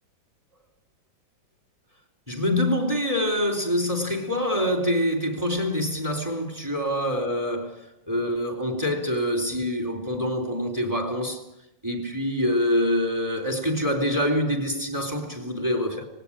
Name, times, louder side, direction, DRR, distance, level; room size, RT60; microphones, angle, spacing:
voice 1, 2.3-7.8 8.1-11.4 11.8-16.1, equal, 10° right, 3.6 m, -25 dB
19.5 x 16.5 x 10.0 m
omnidirectional pair, 2.1 m